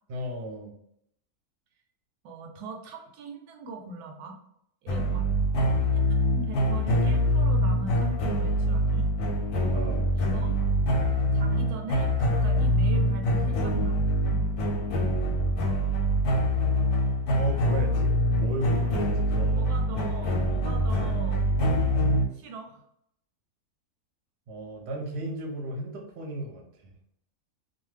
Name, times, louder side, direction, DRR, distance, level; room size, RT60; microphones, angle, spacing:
voice 1, 0.1-0.7 5.6-5.8 9.7-10.1 17.4-19.6 24.5-26.9, right 1 dB, 55° right, 1 dB, 0.8 m, -35 dB
voice 2, 2.2-4.4 4.8-5.4 5.9-9.1 10.1-10.6 11.3-14.1 19.5-21.4 22.3-22.8, right 3 dB, 90° right, 3 dB, 1.1 m, -41 dB
sound 1, 4.9-22.3, equal, 90° left, 1.1 m, -24 dB
2.7 x 2.3 x 3.1 m, 0.74 s
omnidirectional pair, 1.6 m